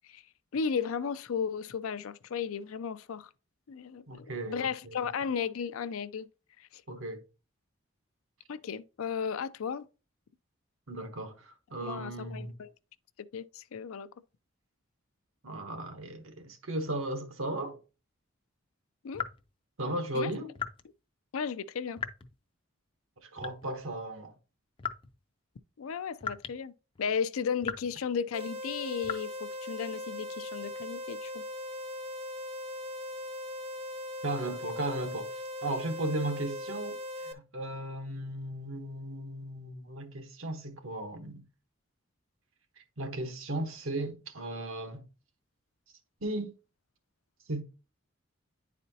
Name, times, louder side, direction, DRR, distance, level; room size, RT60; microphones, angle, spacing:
voice 1, 0.5-3.3 3.7-6.3 6.6-6.8 8.5-9.9 11.8-12.7 13.3-14.1 19.0-19.3 20.1-20.3 21.3-22.0 25.8-26.7 27.0-31.4, left 6 dB, 85° left, 0.4 m, -34 dB
voice 2, 4.1-5.1 6.9-7.2 10.9-12.5 15.4-17.8 19.8-20.5 23.2-24.4 34.2-41.4 43.0-45.0 46.2-46.5 47.5-47.6, right 1 dB, 80° right, 1.1 m, -36 dB
sound 1, 19.1-19.5 20.5-20.8 22.0-22.4 23.4-23.8 24.8-25.2 26.2-26.6 26.9-27.1 27.6-28.0 29.0-29.1, left 6 dB, 25° left, 0.4 m, -38 dB
sound 2, 28.3-37.3, left 1 dB, 30° right, 0.6 m, -39 dB
10.0 x 4.2 x 2.8 m
head